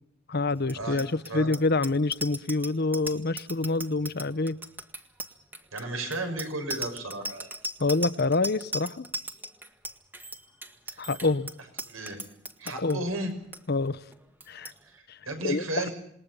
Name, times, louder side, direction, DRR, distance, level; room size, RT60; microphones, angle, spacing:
voice 1, 0.3-4.6 7.8-9.1 11.0-11.5 12.8-13.0 13.7-14.0 14.5-14.7 15.1-15.2 15.4-15.9, left 3 dB, 50° left, 16 dB, 0.9 m, -27 dB
Bicycle bell, 0.6-12.9 13.3-13.6 13.8-14.1 14.4-14.7, right 1 dB, 10° right, 1.4 m, -38 dB
voice 2, 5.7-7.5 10.9-11.3 11.8-12.2 12.6-13.3 14.8-15.9, right 2 dB, 80° right, 6 dB, 6.2 m, -34 dB
27.5 x 20.5 x 5.6 m, 0.73 s
head